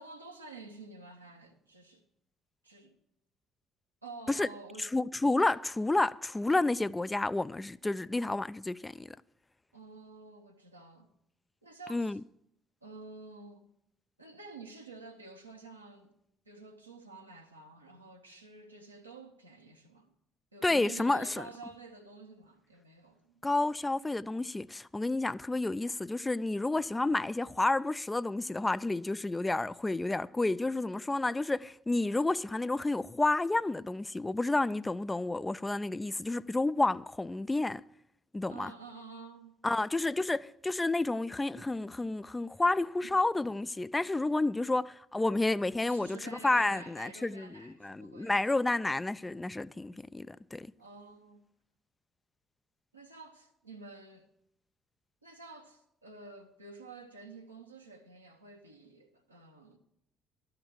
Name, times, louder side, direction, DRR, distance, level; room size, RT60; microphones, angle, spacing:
voice 1, 0.0-2.0 2.6-3.0 4.0-4.9 9.7-11.1 11.6-12.2 12.8-13.7 14.2-16.2 16.4-20.1 20.5-23.4 38.5-39.6 43.0-43.1 45.9-48.3 50.8-51.4 52.9-54.3 55.2-59.8, right 3 dB, 85° right, 1.0 m, -50 dB
voice 2, 4.9-9.2 11.9-12.2 20.6-21.4 23.4-37.8 38.3-38.7 39.6-50.7, left 2 dB, 15° left, 0.3 m, -30 dB
12.5 x 5.8 x 8.8 m
figure-of-eight pair, 50°, 0 cm